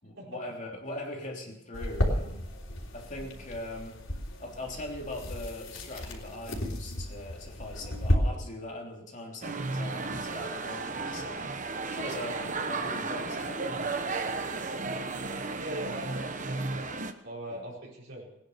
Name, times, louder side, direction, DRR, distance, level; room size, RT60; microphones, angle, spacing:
voice 1, 0.0-2.4 2.9-4.0 4.4-11.4 11.9-13.6 17.5-17.6, left 1 dB, 40° left, 0 dB, 3.3 m, -41 dB
sound 1, 1.7-8.2, equal, 80° left, 3.5 m, -33 dB
sound 2, 9.4-17.1, right 3 dB, 40° right, 1.0 m, -34 dB
voice 2, 15.6-16.9 17.2-18.3, right 1 dB, 70° right, -4 dB, 4.7 m, -40 dB
19.0 x 10.0 x 6.7 m, 0.85 s
head